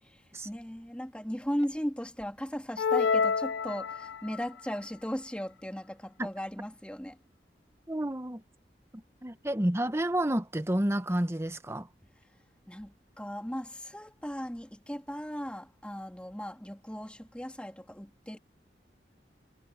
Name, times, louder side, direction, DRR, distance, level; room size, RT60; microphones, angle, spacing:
voice 1, 0.0-7.2 12.7-18.4, equal, 5° left, 2.5 m, -37 dB
sound 1, 2.8-4.4, left 5 dB, 90° left, 0.5 m, -28 dB
voice 2, 7.9-8.4 8.9-11.9, right 1 dB, 15° right, 1.0 m, -30 dB
head